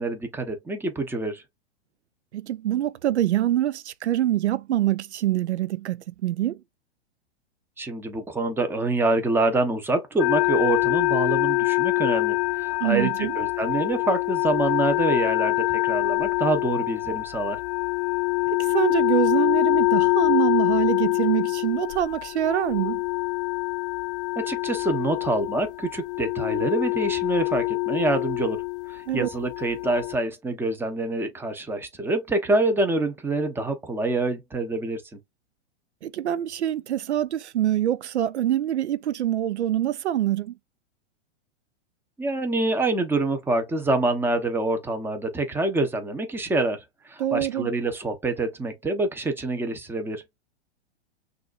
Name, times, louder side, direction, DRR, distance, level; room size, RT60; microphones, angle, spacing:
voice 1, 0.0-1.4 7.8-17.6 24.4-28.6 28.9-35.0 42.2-50.2, right 2 dB, 5° right, 0.8 m, -26 dB
voice 2, 2.3-6.6 12.8-13.4 18.5-23.0 29.1-29.3 36.0-40.6 47.2-47.7, right 12 dB, 90° right, 0.5 m, -25 dB
sound 1, 10.2-30.1, left 26 dB, 55° left, 0.5 m, -25 dB
6.0 x 2.5 x 2.5 m
hypercardioid pair, 125°, 33 cm